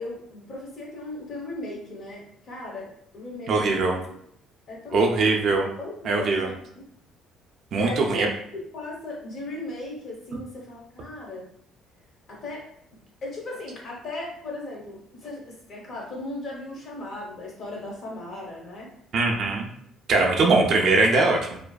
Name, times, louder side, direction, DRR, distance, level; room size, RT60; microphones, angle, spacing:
voice 1, 0.0-4.1 4.7-5.3 5.8-6.8 7.7-8.2 8.5-11.5 12.3-12.7 13.2-18.9, left 2 dB, 40° left, -2 dB, 0.7 m, -37 dB
voice 2, 3.5-4.0 4.9-5.7 6.0-6.5 7.7-8.3 19.1-19.7 20.1-21.6, right 3 dB, 45° right, 1 dB, 0.3 m, -21 dB
2.4 x 2.3 x 2.2 m, 0.70 s
cardioid pair, 165°, 0 cm